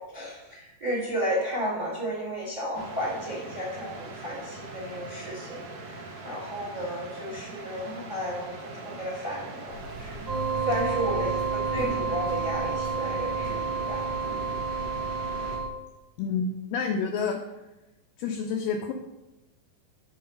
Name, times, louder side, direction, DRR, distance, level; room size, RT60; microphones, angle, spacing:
voice 1, 0.0-10.2 10.5-14.1, equal, 35° right, -5 dB, 0.7 m, -33 dB
sound 1, 2.7-15.6, right 2 dB, 70° right, 2.3 m, -41 dB
sound 2, 9.7-15.7, right 2 dB, 90° right, 3.1 m, -41 dB
sound 3, 10.3-15.7, right 5 dB, 50° right, 1.1 m, -30 dB
voice 2, 16.2-17.4 18.2-18.9, left 5 dB, 80° left, 3 dB, 2.1 m, -28 dB
7.8 x 4.6 x 5.4 m, 0.97 s
omnidirectional pair, 4.5 m